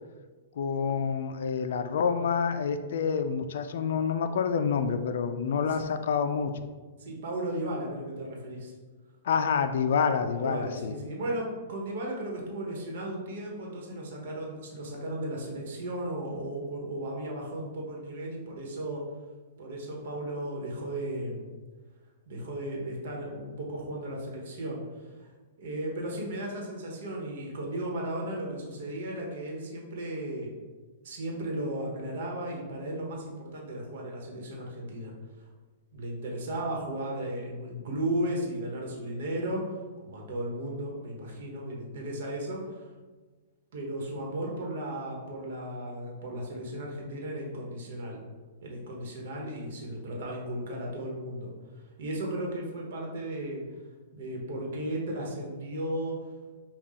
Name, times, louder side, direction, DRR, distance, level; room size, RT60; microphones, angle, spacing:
voice 1, 0.6-6.5 9.2-10.9, left 6 dB, 70° left, 8 dB, 0.3 m, -28 dB
voice 2, 7.0-8.7 10.3-19.1 19.6-21.5 22.3-25.3 25.6-30.5 31.0-35.1 35.9-39.7 40.0-42.9 43.7-48.2 48.6-51.5 52.0-53.6 54.1-56.2, right 1 dB, 60° right, -1 dB, 1.1 m, -35 dB
5.6 x 2.3 x 3.6 m, 1.3 s
hypercardioid pair, 155°, 0 cm